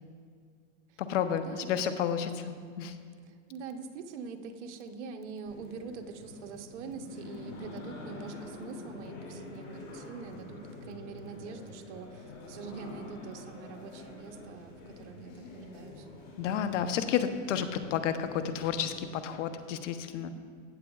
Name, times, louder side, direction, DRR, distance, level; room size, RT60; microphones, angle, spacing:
voice 1, 1.0-3.0 16.4-20.3, left 8 dB, 75° left, 10 dB, 0.8 m, -31 dB
voice 2, 3.2-16.1 20.2-20.3, right 5 dB, 65° right, 6 dB, 1.0 m, -44 dB
sound 1, 5.5-19.4, left 2 dB, 50° left, 2.7 m, -47 dB
16.0 x 8.0 x 2.4 m, 2.1 s
supercardioid pair, 140°, 37 cm